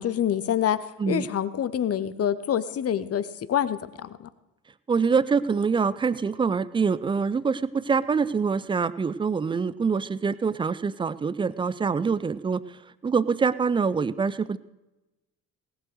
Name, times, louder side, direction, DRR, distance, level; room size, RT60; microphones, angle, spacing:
voice 1, 0.0-4.3, left 9 dB, 30° left, 15 dB, 0.9 m, -27 dB
voice 2, 4.9-14.6, right 5 dB, 10° right, 17 dB, 0.3 m, -25 dB
18.0 x 7.9 x 6.5 m, 1.0 s
figure-of-eight pair, 50°, 48 cm